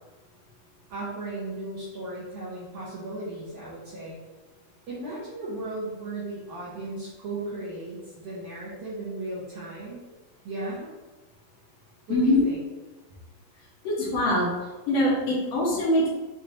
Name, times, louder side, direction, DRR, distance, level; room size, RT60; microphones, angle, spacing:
voice 1, 0.9-4.2 4.9-10.0 10.4-10.9 12.1-12.6, right 2 dB, 65° right, -10 dB, 2.2 m, -36 dB
voice 2, 12.1-12.4 13.8-14.5 14.9-16.1, left 1 dB, 60° left, -6 dB, 1.8 m, -23 dB
6.7 x 3.0 x 2.7 m, 1.2 s
omnidirectional pair, 4.1 m